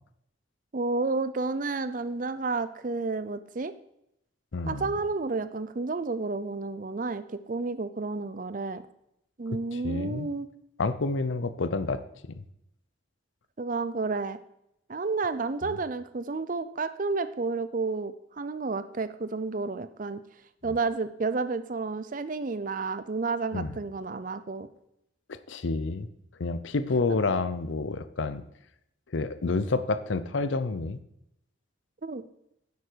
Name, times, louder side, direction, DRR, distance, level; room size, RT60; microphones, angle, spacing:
voice 1, 0.7-3.7 4.7-8.8 9.4-10.5 13.6-14.4 14.9-20.2 20.6-24.7 27.1-27.2 32.0-32.2, right 3 dB, 40° right, 13 dB, 0.5 m, -31 dB
voice 2, 4.5-4.9 9.7-10.3 10.8-12.0 15.7-15.8 23.5-23.8 25.5-26.1 26.4-28.4 29.1-31.0, left 3 dB, 75° left, 13 dB, 0.6 m, -29 dB
9.9 x 8.2 x 4.6 m, 0.79 s
head